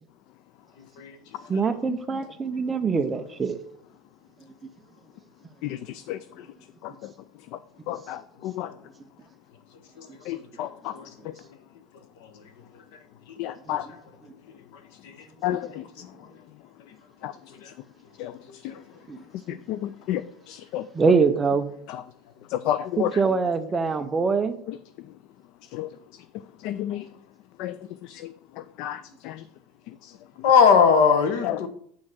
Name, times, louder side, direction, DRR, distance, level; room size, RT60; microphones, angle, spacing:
voice 1, 1.5-3.6 13.7-13.8 19.1-19.2 20.9-21.7 23.2-24.6, right 5 dB, 15° right, 0.5 m, -23 dB
voice 2, 5.6-6.2 6.8-6.9 7.9-8.7 10.3-10.9 13.4-13.9 15.4-15.8 17.2-17.3 18.2-18.3 19.5-20.9 21.9-22.0 22.5-23.2 24.7-24.8 25.7-25.9 26.6-27.1 27.6-27.8 28.0-28.3 28.8-29.4 30.0-30.1 31.4-31.6, left 12 dB, 50° left, 0.3 m, -31 dB
voice 3, 30.4-31.7, left 6 dB, 70° left, 1.2 m, -19 dB
8.5 x 3.7 x 6.2 m
cardioid pair, 170°, 0 cm